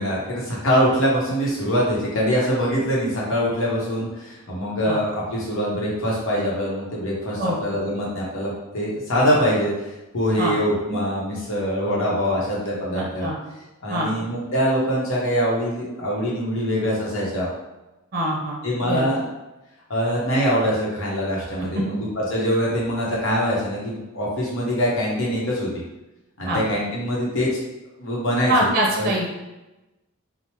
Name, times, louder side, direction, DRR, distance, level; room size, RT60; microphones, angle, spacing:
voice 1, 0.0-9.9 10.1-13.3 13.8-17.5 18.6-19.2 19.9-25.7 26.4-27.5 28.0-28.7 29.0-29.1, equal, 65° left, -4 dB, 0.9 m, -23 dB
voice 2, 12.9-13.4 13.9-14.1 18.1-18.6 18.9-19.1 21.7-21.8 26.5-26.6 28.5-29.3, right 1 dB, 45° right, -2 dB, 0.6 m, -23 dB
2.9 x 2.0 x 3.0 m, 1.0 s
head